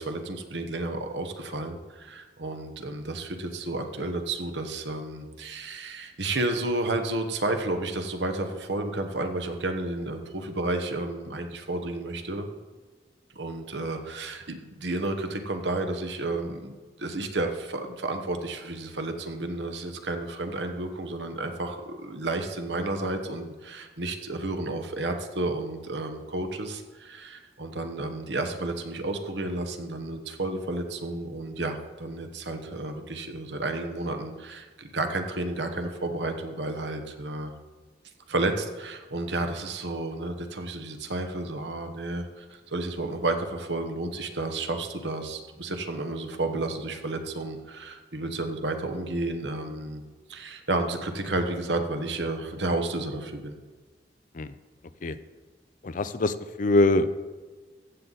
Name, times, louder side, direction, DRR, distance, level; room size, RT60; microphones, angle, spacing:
voice 1, 0.0-12.5 13.3-37.5 38.3-50.0 50.3-53.6, right 2 dB, 85° right, 6 dB, 1.2 m, -31 dB
voice 2, 55.8-57.1, left 2 dB, 50° left, 12 dB, 0.5 m, -23 dB
14.5 x 7.8 x 4.1 m, 1.4 s
head